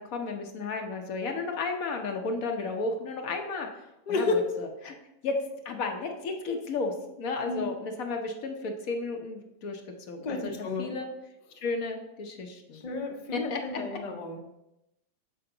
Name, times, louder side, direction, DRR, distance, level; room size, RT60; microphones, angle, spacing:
voice 1, 0.0-3.7 4.1-5.0 5.2-9.8 10.1-11.1 11.6-12.8 13.3-13.6, left 3 dB, 65° left, 3 dB, 1.1 m, -33 dB
voice 2, 4.1-4.4 7.4-7.6 10.2-10.9 12.7-14.4, left 3 dB, 40° left, 1 dB, 0.6 m, -31 dB
6.8 x 4.4 x 3.8 m, 0.88 s
omnidirectional pair, 1.7 m